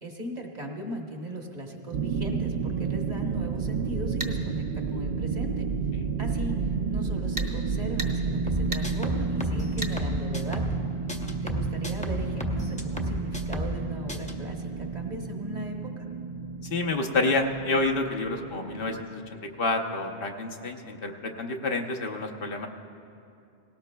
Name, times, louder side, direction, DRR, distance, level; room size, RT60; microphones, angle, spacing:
voice 1, 0.0-5.7 6.2-6.6 6.9-10.8 11.4-16.1, equal, 45° right, 1 dB, 1.2 m, -38 dB
sound 1, 1.9-19.0, right 5 dB, 65° right, 0.7 m, -31 dB
sound 2, 4.2-4.4 7.4-7.5 8.0-8.1 8.7-8.9 9.8-10.0, right 1 dB, 20° right, 0.8 m, -33 dB
sound 3, 8.5-10.8 11.1-13.8 14.1-14.3, equal, 10° left, 0.5 m, -33 dB
voice 2, 16.7-19.2 19.6-22.7, left 2 dB, 65° left, 3 dB, 1.0 m, -28 dB
18.5 x 17.5 x 2.2 m, 2.6 s
omnidirectional pair, 1.0 m